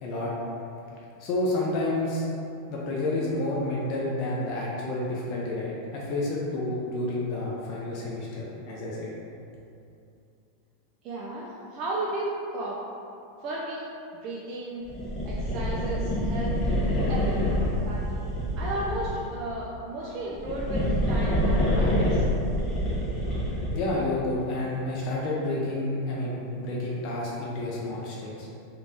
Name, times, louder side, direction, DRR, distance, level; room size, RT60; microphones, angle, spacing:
voice 1, 0.0-0.3 1.2-2.2 2.7-9.1 23.7-28.5, left 2 dB, 45° left, -5 dB, 0.5 m, -30 dB
voice 2, 11.0-12.8 13.4-13.9 14.2-14.8 15.3-16.5 17.1-17.4 17.8-18.0 18.6-22.3, right 1 dB, 45° right, -5 dB, 0.5 m, -34 dB
sound 1, 14.9-19.3 20.2-23.9, equal, 20° left, 1.3 m, -26 dB
3.1 x 2.8 x 3.4 m, 2.6 s
supercardioid pair, 130°, 0 cm